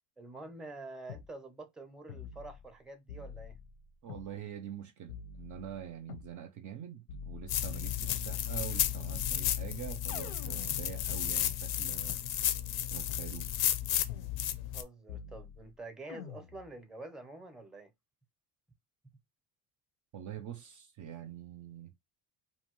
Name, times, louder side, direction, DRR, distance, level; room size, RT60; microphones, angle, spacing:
voice 1, 0.2-3.6 14.6-17.9, right 2 dB, ahead, 0.6 m, -47 dB
sound 1, 1.1-1.3 2.1-2.8 3.1-4.3 5.1-6.3 7.1-8.3 9.1-11.2 12.1-12.2 13.1-13.3 14.1-14.8 15.1-15.7 16.1-16.7, left 7 dB, 85° left, 0.8 m, -47 dB
voice 2, 4.0-12.2 12.9-13.6 20.1-21.9, right 10 dB, 45° right, 0.5 m, -45 dB
sound 2, 7.5-14.8, left 11 dB, 55° left, 0.6 m, -33 dB
2.7 x 2.2 x 3.0 m
cardioid pair, 100°, 44 cm